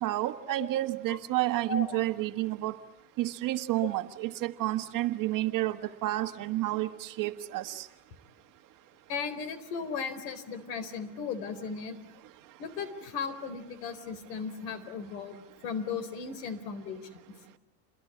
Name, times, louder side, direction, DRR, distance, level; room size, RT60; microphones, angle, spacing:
voice 1, 0.0-2.8 3.2-7.9, right 16 dB, 40° right, 8 dB, 1.6 m, -30 dB
voice 2, 9.1-12.0 12.6-17.2, left 5 dB, 75° left, 13 dB, 4.4 m, -36 dB
28.5 x 22.0 x 8.7 m, 0.98 s
supercardioid pair, 120°, 50 cm